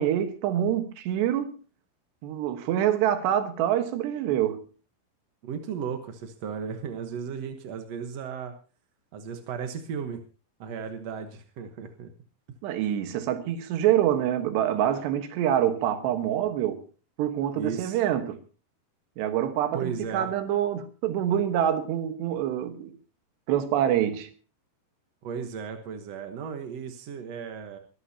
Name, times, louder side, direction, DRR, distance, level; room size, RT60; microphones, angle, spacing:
voice 1, 0.0-1.6 2.2-4.7 12.6-16.8 17.2-18.4 19.2-22.9 23.5-24.3, right 10 dB, 85° right, 3.5 m, -26 dB
voice 2, 5.4-8.5 9.1-10.2 10.6-12.1 17.6-18.0 19.7-20.3 25.2-27.8, right 6 dB, 65° right, 1.6 m, -35 dB
23.0 x 13.0 x 2.9 m
omnidirectional pair, 4.8 m